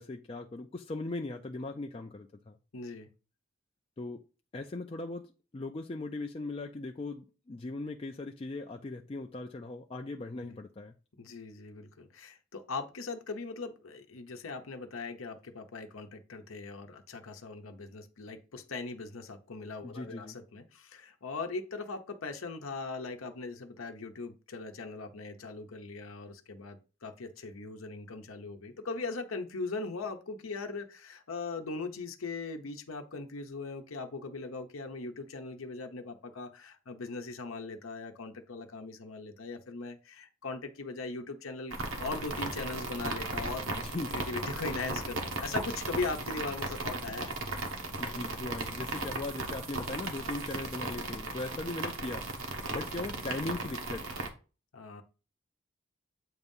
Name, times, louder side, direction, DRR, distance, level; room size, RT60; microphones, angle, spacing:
voice 1, 0.0-2.6 4.0-4.2 4.5-10.9 19.8-20.4 43.7-44.2 48.0-54.1, left 2 dB, 30° left, 0.4 m, -39 dB
voice 2, 2.7-3.1 10.4-10.6 11.2-43.7 44.1-47.3 54.7-55.0, left 3 dB, 85° left, 0.8 m, -40 dB
sound 1, 41.7-54.3, right 2 dB, 80° right, 1.3 m, -36 dB
8.0 x 2.7 x 5.3 m
head